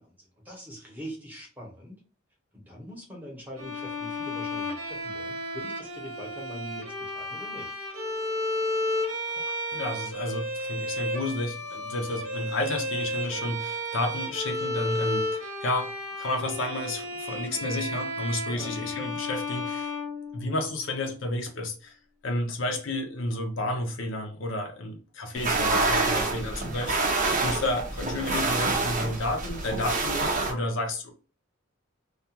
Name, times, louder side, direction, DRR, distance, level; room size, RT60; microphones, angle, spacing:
voice 1, 0.0-2.0 2.5-7.7 18.5-18.7 26.0-26.2, equal, 10° right, 0.9 m, -43 dB
Bowed string instrument, 3.6-20.8, left 1 dB, 85° right, 0.9 m, -33 dB
voice 2, 9.4-19.9 20.3-22.0 22.2-31.1, left 1 dB, 60° left, 0.6 m, -31 dB
sound 1, 25.3-30.5, right 3 dB, 40° right, 0.5 m, -27 dB
2.3 x 2.3 x 2.8 m
head